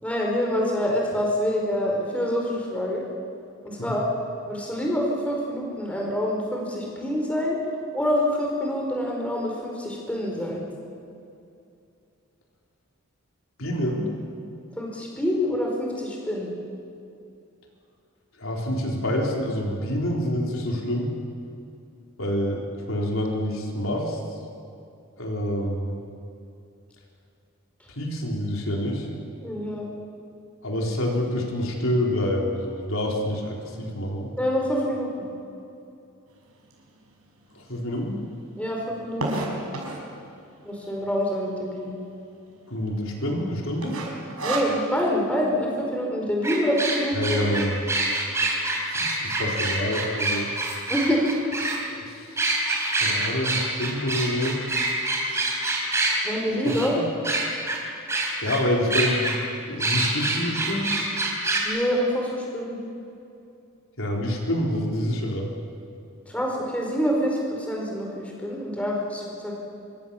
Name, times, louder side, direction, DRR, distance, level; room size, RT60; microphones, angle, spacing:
voice 1, 0.0-3.0 3.6-4.1 4.5-7.6 7.9-10.6 14.8-16.5 29.4-29.9 34.4-35.3 38.6-39.5 40.6-41.9 44.4-47.4 50.9-51.2 56.2-57.0 61.6-62.8 66.3-69.5, equal, 5° left, -1 dB, 4.7 m, -26 dB
voice 2, 13.6-14.1 18.4-21.1 22.2-24.2 25.2-25.9 28.0-29.1 30.6-34.3 37.5-38.2 42.7-44.0 47.1-47.9 48.6-50.5 52.0-52.4 52.9-54.6 55.3-55.5 56.9-57.0 58.4-59.3 59.7-61.0 64.0-65.5, left 1 dB, 65° left, -1 dB, 4.2 m, -27 dB
sound 1, 36.7-36.8 37.4-37.5 37.7-37.8 38.0-40.2 40.8-41.2 41.5-41.6 41.8-42.0 42.5-42.9 43.1-43.4 43.8-45.1, right 2 dB, 75° right, 5.9 m, -30 dB
sound 2, 46.4-51.8 52.4-56.2 56.6-56.9 57.2-57.8 58.1-58.6 58.9-59.4 59.8-61.6, right 2 dB, 15° right, 3.9 m, -25 dB
26.0 x 24.5 x 7.2 m, 2.6 s
head